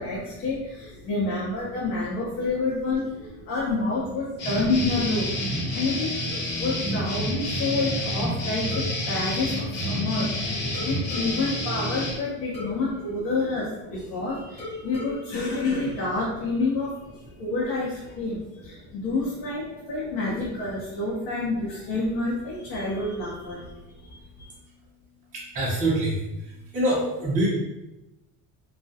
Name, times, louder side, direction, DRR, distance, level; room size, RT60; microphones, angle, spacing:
voice 1, 0.0-10.3 10.6-23.6 24.1-24.5, left 3 dB, 75° left, -7 dB, 0.8 m, -28 dB
sound 1, 4.4-12.1, left 1 dB, 40° left, 1.1 m, -29 dB
sound 2, 8.7-10.3 10.7-14.1 14.6-16.5, left 2 dB, 20° left, 0.3 m, -41 dB
voice 2, 25.5-26.1 26.7-27.5, right 1 dB, 20° right, -8 dB, 0.7 m, -23 dB
2.3 x 2.2 x 2.6 m, 0.96 s
cardioid pair, 150°, 36 cm